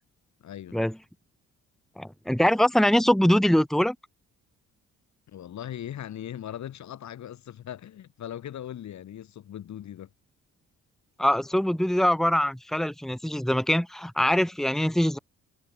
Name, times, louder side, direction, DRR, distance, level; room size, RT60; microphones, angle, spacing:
voice 1, 0.4-0.8 5.3-10.1, left 11 dB, 65° left, 4.1 m, -39 dB
voice 2, 2.0-4.0 11.2-15.2, left 1 dB, ahead, 2.1 m, -23 dB
cardioid pair, 90°, 30 cm